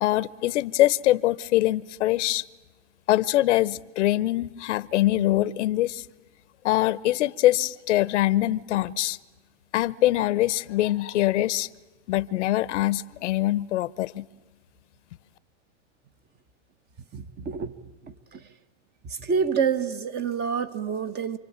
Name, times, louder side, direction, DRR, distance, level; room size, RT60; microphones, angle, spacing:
voice 1, 0.0-2.4 3.1-6.0 6.6-9.2 9.7-11.7 12.1-14.2, left 15 dB, 70° left, 0.9 m, -23 dB
voice 2, 17.1-17.7 18.0-18.5 19.0-21.4, right 6 dB, 25° right, 1.3 m, -28 dB
28.5 x 24.0 x 8.8 m
hypercardioid pair, 130°, 37 cm